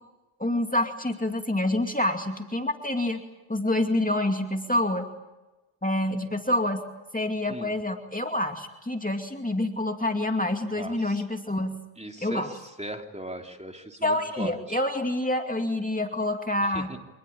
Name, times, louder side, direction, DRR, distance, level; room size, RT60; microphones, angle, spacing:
voice 1, 0.4-3.2 3.5-5.1 5.8-6.8 7.1-11.8 12.2-12.5 14.0-16.9, left 1 dB, 15° left, 4 dB, 2.5 m, -27 dB
voice 2, 10.8-11.2 12.0-14.8 16.6-17.0, right 1 dB, 15° right, 4 dB, 3.2 m, -38 dB
26.5 x 20.0 x 8.9 m, 1.1 s
cardioid pair, 55°, 49 cm